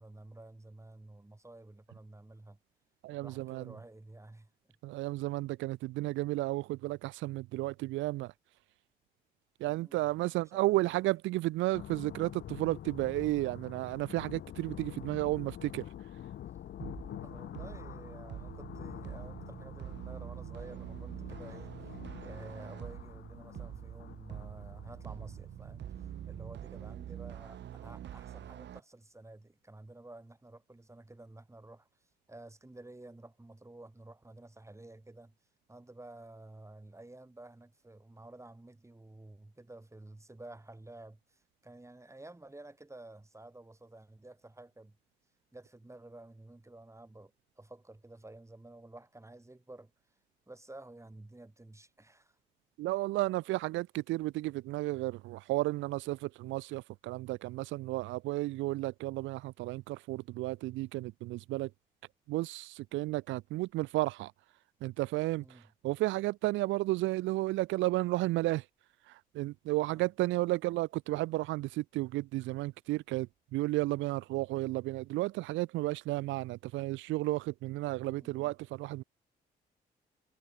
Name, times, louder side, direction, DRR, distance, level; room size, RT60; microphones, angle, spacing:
voice 1, 0.0-2.6 3.2-4.5 9.6-10.9 17.2-21.7 22.2-25.9 26.3-31.9 32.3-35.3 35.7-45.0 45.5-49.9 50.5-52.4 65.3-65.7 69.8-70.1 78.0-78.5, right 2 dB, 15° right, 6.8 m, -52 dB
voice 2, 3.0-3.6 4.8-8.3 9.6-15.8 52.8-61.7 62.3-64.3 64.8-65.4 65.8-68.6 69.3-73.3 73.5-79.0, right 18 dB, 90° right, 0.9 m, -33 dB
sound 1, 11.7-27.0, left 11 dB, 70° left, 7.3 m, -47 dB
sound 2, 16.8-28.8, right 11 dB, 70° right, 1.9 m, -45 dB
supercardioid pair, 65°, 19 cm